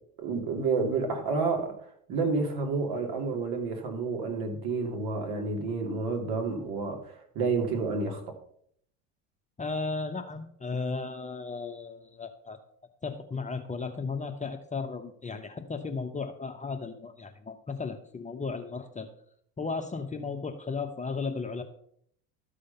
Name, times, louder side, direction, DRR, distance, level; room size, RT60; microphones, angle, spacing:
voice 1, 0.2-1.7 2.1-8.3, right 4 dB, 55° right, 2 dB, 2.9 m, -30 dB
voice 2, 9.6-12.6 13.0-19.1 19.6-21.6, left 4 dB, 15° left, 5 dB, 0.9 m, -35 dB
13.0 x 5.1 x 5.6 m, 0.66 s
hypercardioid pair, 75°, 46 cm